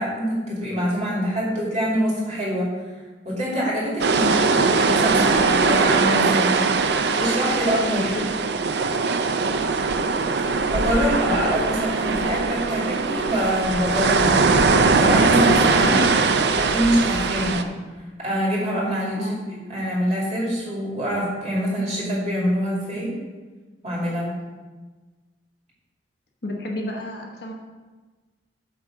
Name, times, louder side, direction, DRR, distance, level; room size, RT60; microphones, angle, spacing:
voice 1, 0.0-2.7 3.2-4.2 4.5-6.6 7.2-8.1 10.7-14.5 15.0-16.0 16.6-17.6 18.2-23.1 23.8-24.3, equal, 40° right, -6 dB, 2.5 m, -25 dB
voice 2, 4.0-4.4 7.9-8.3 15.9-16.2 19.2-19.4 26.4-27.5, left 1 dB, 60° left, 1 dB, 1.1 m, -30 dB
sound 1, 4.0-17.6, right 4 dB, 65° right, 0.5 m, -21 dB
8.2 x 3.7 x 6.3 m, 1.3 s
head